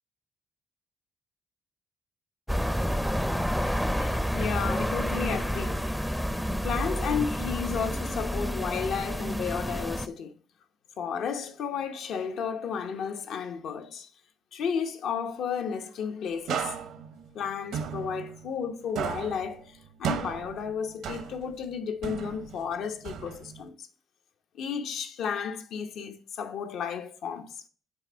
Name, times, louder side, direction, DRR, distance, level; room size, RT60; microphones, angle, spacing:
sound 1, 2.5-10.1, equal, 5° left, 0.4 m, -29 dB
voice 1, 3.5-5.8 6.6-10.3 11.0-14.1 14.5-16.8 17.3-23.9 24.5-27.6, left 7 dB, 75° left, 0.8 m, -33 dB
sound 2, 16.5-18.7 19.0-21.6 22.0-23.7, right 7 dB, 80° right, 0.8 m, -35 dB
7.9 x 3.4 x 5.1 m
cardioid pair, 100°, 0 cm